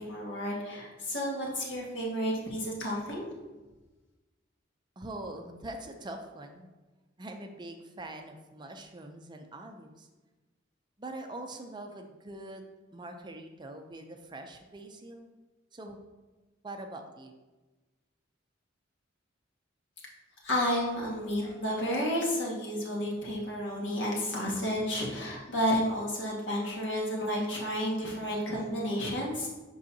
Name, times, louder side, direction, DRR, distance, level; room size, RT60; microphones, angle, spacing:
voice 1, 0.0-3.3 20.4-29.5, equal, 65° left, -3 dB, 1.7 m, -31 dB
voice 2, 5.0-6.7 7.2-10.1 11.0-12.6 12.9-15.3 15.7-16.0 16.6-17.3, right 1 dB, 25° right, 4 dB, 0.5 m, -43 dB
7.7 x 5.5 x 2.7 m, 1.2 s
head